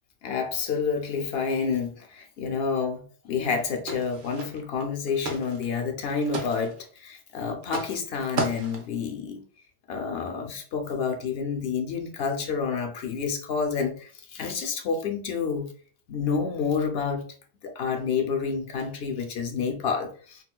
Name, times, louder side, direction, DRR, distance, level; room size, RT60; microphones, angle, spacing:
voice 1, 0.2-6.7 7.0-9.4 9.9-15.7 16.1-17.2 17.6-20.4, left 5 dB, 65° left, 0.8 m, -29 dB
sound 1, 3.9-4.8 5.1-5.6 5.9-6.8 7.6-8.0 8.4-9.0, right 2 dB, 70° right, 0.9 m, -33 dB
4.0 x 2.2 x 2.2 m
omnidirectional pair, 1.1 m